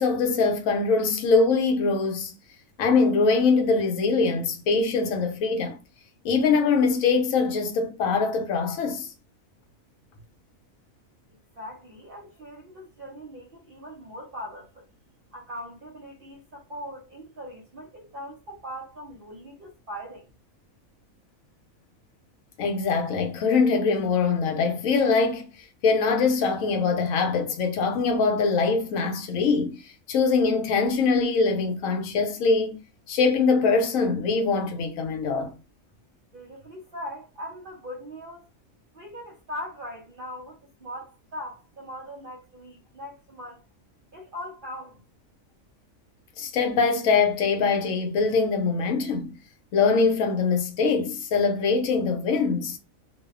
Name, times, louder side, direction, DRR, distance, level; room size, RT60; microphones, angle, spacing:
voice 1, 0.0-2.3 2.8-5.8 6.2-9.1 22.6-25.5 25.8-29.8 30.1-32.8 33.1-35.5 46.4-49.3 49.7-52.8, left 4 dB, 75° left, 1.0 m, -23 dB
voice 2, 11.5-14.9 15.3-20.3 36.3-38.5 38.9-43.6 44.1-45.0, equal, 60° right, 0.6 m, -40 dB
2.7 x 2.0 x 2.3 m
omnidirectional pair, 1.4 m